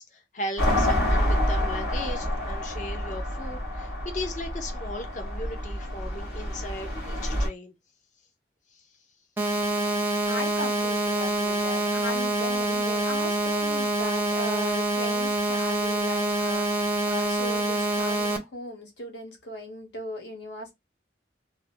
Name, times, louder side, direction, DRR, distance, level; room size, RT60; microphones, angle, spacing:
voice 1, 0.0-7.7 8.7-8.9, left 1 dB, 45° left, 0.6 m, -37 dB
sound 1, 0.6-7.5, left 1 dB, 60° left, 1.8 m, -28 dB
sound 2, 9.4-18.4, right 1 dB, 10° right, 0.5 m, -26 dB
voice 2, 10.3-20.7, left 1 dB, 80° left, 1.2 m, -38 dB
3.3 x 2.1 x 2.4 m
head